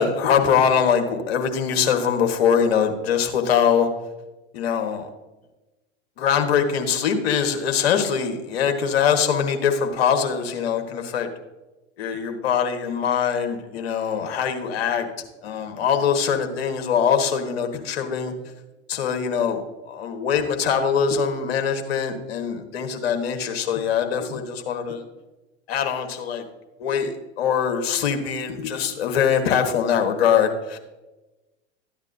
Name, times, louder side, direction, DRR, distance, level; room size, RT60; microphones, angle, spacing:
voice 1, 0.0-3.9 4.5-5.1 6.2-11.3 12.0-15.1 15.4-18.3 18.9-19.6 19.9-25.0 25.7-26.4 26.8-27.1 27.4-30.8, left 7 dB, 60° left, 6 dB, 1.4 m, -22 dB
13.5 x 9.7 x 2.7 m, 1.1 s
figure-of-eight pair, 95°, 35 cm